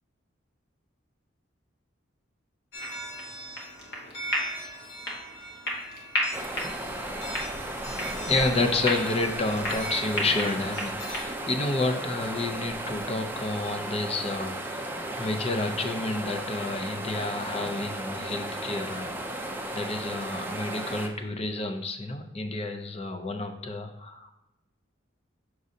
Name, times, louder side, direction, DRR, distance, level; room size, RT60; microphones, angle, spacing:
sound 1, 2.7-11.2, equal, 55° left, 1.3 m, -34 dB
sound 2, 6.3-21.1, right 1 dB, 10° right, 0.5 m, -35 dB
voice 1, 7.9-14.6 15.1-19.3 19.7-24.4, left 2 dB, 30° left, 5 dB, 0.6 m, -30 dB
6.3 x 6.2 x 2.7 m, 0.91 s
head